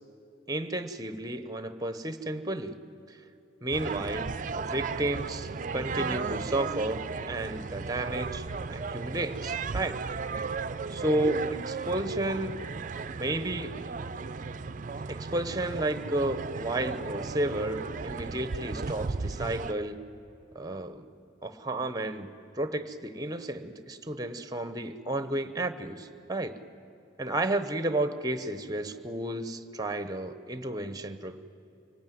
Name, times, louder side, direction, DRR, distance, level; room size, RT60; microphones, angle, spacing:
voice 1, 0.5-2.8 3.1-3.2 3.6-10.0 10.9-12.6 13.1-13.7 15.1-20.0 20.5-21.1 21.4-26.6 27.2-31.4, right 1 dB, 20° right, 11 dB, 1.0 m, -32 dB
sound 1, 3.7-19.7, right 4 dB, 45° right, 0.5 m, -35 dB
25.5 x 18.5 x 9.4 m, 2.8 s
head